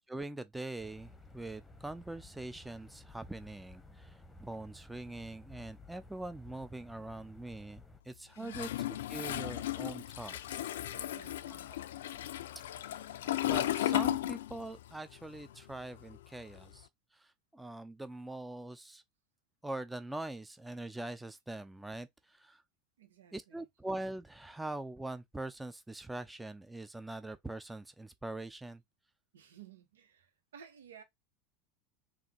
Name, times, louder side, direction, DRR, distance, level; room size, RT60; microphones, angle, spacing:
voice 1, 0.1-8.7 9.1-10.6 12.9-19.0 19.6-22.6 23.3-28.8, right 2 dB, 5° right, 0.5 m, -43 dB
sound 1, 0.8-8.0, left 2 dB, 10° left, 1.0 m, -55 dB
voice 2, 8.4-8.7 10.9-11.7 23.0-23.7 29.3-31.0, right 9 dB, 85° right, 1.3 m, -55 dB
Toilet flush, 8.5-14.9 15.2-16.8, left 13 dB, 80° left, 0.4 m, -35 dB
3.8 x 2.7 x 4.5 m
hypercardioid pair, 90°, 0 cm